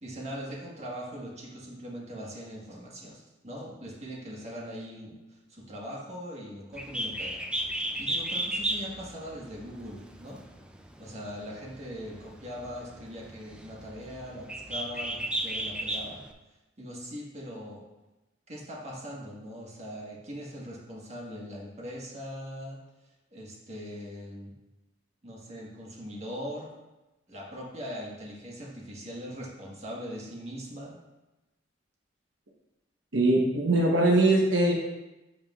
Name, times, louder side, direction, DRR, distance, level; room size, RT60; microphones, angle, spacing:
voice 1, 0.0-10.4 11.0-16.2 16.8-17.8 18.5-22.8 23.3-24.5 25.2-26.7 27.3-31.0, equal, 35° right, -4 dB, 1.5 m, -41 dB
Bird, 6.7-16.3, right 1 dB, 5° right, 0.3 m, -34 dB
voice 2, 33.1-34.7, right 2 dB, 75° right, -1 dB, 1.0 m, -22 dB
11.0 x 5.1 x 2.4 m, 1.0 s
head